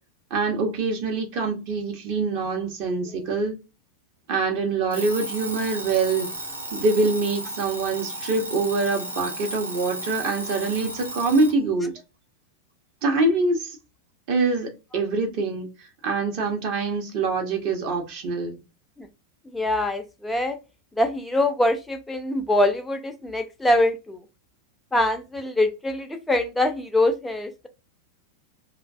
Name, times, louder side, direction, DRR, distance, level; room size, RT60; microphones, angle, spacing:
voice 1, 0.3-3.6 4.3-6.3 6.7-11.9 13.0-13.8 14.3-15.7 16.0-18.6, right 3 dB, 45° right, 0.7 m, -24 dB
Alarm, 4.9-11.6, right 1 dB, 75° right, 0.5 m, -34 dB
voice 2, 19.5-20.6 21.0-24.2 24.9-27.7, left 1 dB, 5° left, 0.5 m, -24 dB
2.5 x 2.1 x 2.4 m
figure-of-eight pair, 90°, 0 cm